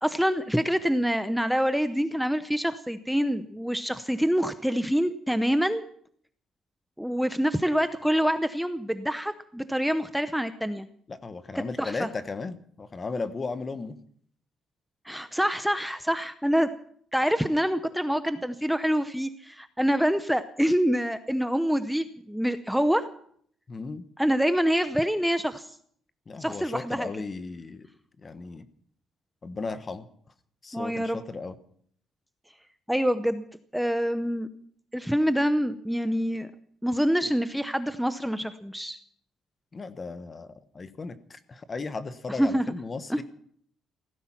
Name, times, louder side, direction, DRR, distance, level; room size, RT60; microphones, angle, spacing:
voice 1, 0.0-5.8 7.0-10.9 11.8-12.1 15.1-16.7 17.1-23.0 24.2-25.7 26.4-27.1 30.7-31.2 32.9-33.4 33.7-34.5 34.9-36.5 36.8-39.0 42.3-42.7 43.1-43.2, equal, ahead, 10 dB, 0.7 m, -26 dB
voice 2, 11.1-14.0 23.7-24.0 26.3-27.9 28.2-28.6 29.4-30.1 30.6-31.6 39.7-43.2, left 4 dB, 30° left, 12 dB, 1.1 m, -36 dB
16.5 x 14.5 x 5.8 m, 0.62 s
cardioid pair, 135°, 0 cm